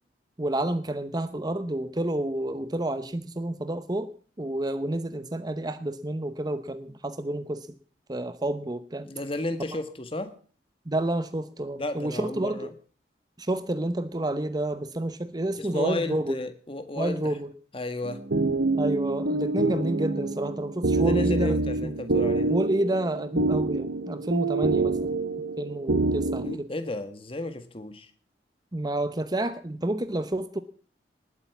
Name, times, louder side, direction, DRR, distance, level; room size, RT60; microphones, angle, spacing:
voice 1, 0.4-4.1 4.4-7.7 8.1-9.1 10.9-12.7 13.4-16.4 17.0-17.5 18.8-21.9 22.5-25.0 25.6-26.7 28.7-30.6, right 1 dB, 20° right, 11 dB, 0.8 m, -29 dB
voice 2, 9.0-10.3 11.8-12.7 15.6-17.3 17.7-18.2 21.0-22.5 26.0-26.1 26.4-28.1, left 2 dB, 30° left, 9 dB, 1.7 m, -33 dB
sound 1, 18.0-26.6, right 3 dB, 80° right, 1.2 m, -26 dB
19.5 x 8.5 x 7.1 m, 0.43 s
head